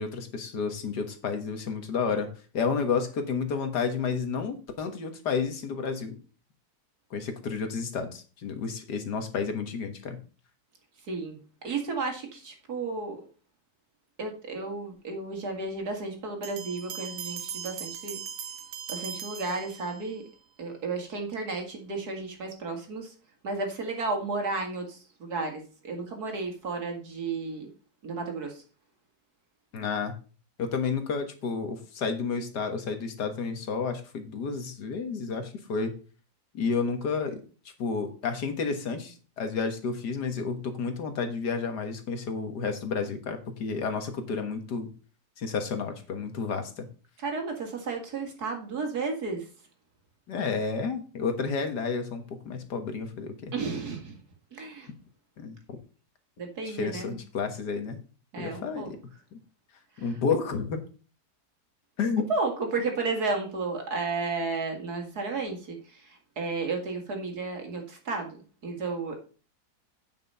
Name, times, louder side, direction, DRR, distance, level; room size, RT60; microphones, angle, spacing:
voice 1, 0.0-2.3 2.5-6.2 7.1-10.2 29.7-30.1 30.6-35.9 36.5-37.4 37.8-44.9 45.4-46.9 50.3-53.5 55.4-55.6 56.7-58.0 58.4-59.0 59.3-59.4 60.0-60.8 62.0-62.2, left 5 dB, 75° left, 6 dB, 2.0 m, -31 dB
voice 2, 11.1-13.2 14.2-18.2 18.9-20.2 20.6-23.1 23.4-27.7 28.0-28.6 47.2-49.5 53.5-54.2 54.5-54.9 56.4-57.1 58.3-58.9 60.0-60.2 62.3-68.4 68.6-69.1, right 3 dB, 65° right, 3 dB, 2.5 m, -33 dB
sound 1, 16.4-20.2, right 8 dB, 85° right, 1.4 m, -39 dB
9.1 x 5.9 x 5.5 m, 0.37 s
omnidirectional pair, 1.8 m